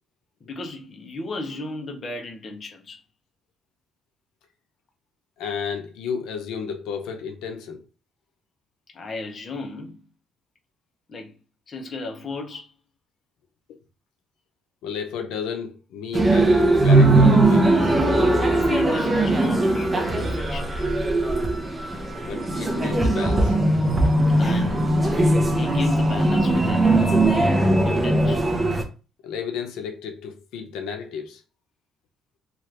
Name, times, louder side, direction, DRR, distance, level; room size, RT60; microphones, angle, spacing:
voice 1, 0.4-3.0 8.9-10.0 11.1-11.4 11.7-12.7 18.5-20.7 24.4-25.0 25.5-26.9 27.9-28.4, left 2 dB, 35° left, 0.6 m, -35 dB
voice 2, 5.4-7.8 14.8-18.0 22.2-23.6 29.2-31.4, left 6 dB, 90° left, 0.6 m, -32 dB
sound 1, 16.1-28.8, right 2 dB, 15° right, 0.6 m, -19 dB
2.9 x 2.4 x 3.1 m
cardioid pair, 145°, 0 cm